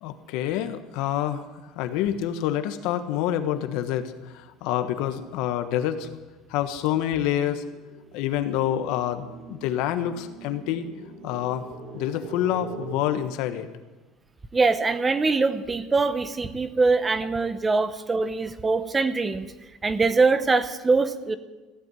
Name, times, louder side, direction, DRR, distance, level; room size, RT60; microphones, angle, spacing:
voice 1, 0.0-6.1 6.5-7.6 8.1-10.9 11.2-11.7 11.9-13.7, left 11 dB, 70° left, 10 dB, 1.3 m, -27 dB
sound 1, 3.3-3.6 4.0-12.9, right 6 dB, 60° right, 2.6 m, -44 dB
voice 2, 14.5-19.5 19.8-21.4, right 3 dB, 15° right, 12 dB, 0.8 m, -23 dB
15.5 x 8.6 x 9.4 m, 1.2 s
cardioid pair, 140°, 0 cm